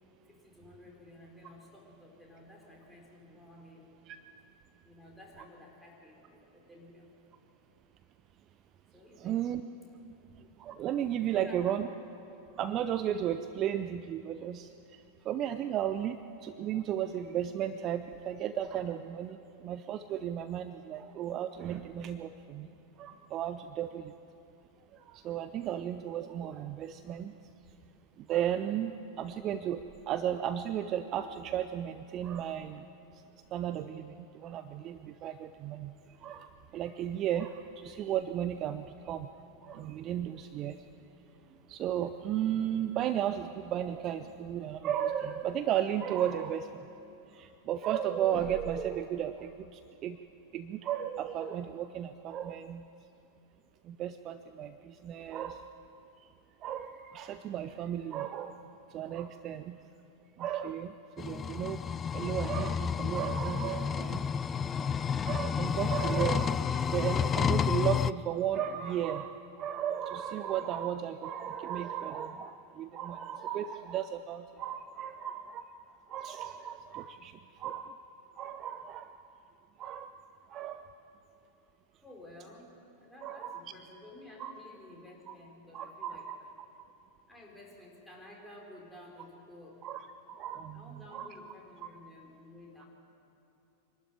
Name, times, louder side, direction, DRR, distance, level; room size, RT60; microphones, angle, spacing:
voice 1, 0.2-3.9 4.8-7.1 8.9-9.4 11.2-11.8 82.0-86.5 87.3-89.8 90.7-92.9, left 1 dB, 5° left, -3 dB, 4.8 m, -53 dB
voice 2, 9.2-9.6 10.6-11.9 12.5-22.7 23.0-24.1 24.9-27.4 28.2-32.9 33.5-35.9 36.2-39.3 39.6-40.8 41.7-46.9 47.3-50.2 50.5-52.8 53.8-55.7 56.6-58.6 58.9-59.8 60.4-61.8 62.1-64.3 65.0-75.7 76.1-77.9 78.4-79.2 79.8-80.1 80.5-80.9 83.2-83.6 84.4-84.5 85.3-85.4 85.7-86.4 89.8-91.3 91.8-91.9, right 10 dB, 35° right, 10 dB, 0.6 m, -34 dB
sound 1, 61.2-68.1, left 7 dB, 20° left, 0.4 m, -30 dB
25.0 x 12.0 x 8.9 m, 2.9 s
figure-of-eight pair, 90°, 0 cm